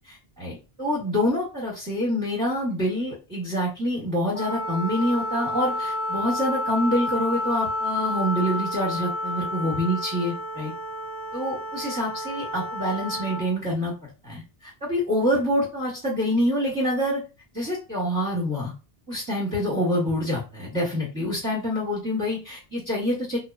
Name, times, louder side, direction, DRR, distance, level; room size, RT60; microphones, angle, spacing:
voice 1, 0.0-10.7 11.3-13.9 14.2-17.2 17.5-18.7 19.1-23.4, equal, 20° right, -7 dB, 0.9 m, -26 dB
Wind instrument woodwind instrument, 4.3-13.5, left 1 dB, 80° left, 0.8 m, -30 dB
2.9 x 2.0 x 2.3 m, 0.31 s
omnidirectional pair, 1.1 m